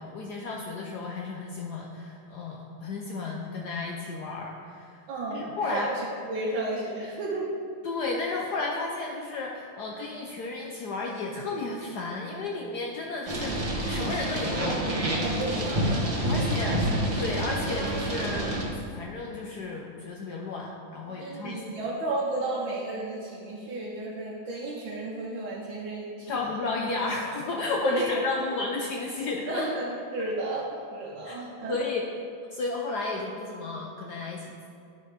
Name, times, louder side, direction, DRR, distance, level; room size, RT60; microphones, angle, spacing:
voice 1, 0.0-5.0 5.3-5.9 7.8-13.5 13.9-14.8 16.3-16.7 17.2-18.5 18.9-21.6 26.3-29.7 31.2-31.4 31.7-32.0 32.5-34.7, left 3 dB, 70° left, -1 dB, 1.0 m, -33 dB
voice 2, 5.1-7.5 15.2-16.6 21.1-26.4 27.8-28.2 28.5-28.6 29.5-31.8, right 2 dB, 70° right, -6 dB, 1.7 m, -33 dB
sound 1, 13.3-18.6, right 1 dB, 30° right, 0.7 m, -28 dB
10.5 x 4.2 x 5.0 m, 2.4 s
omnidirectional pair, 2.4 m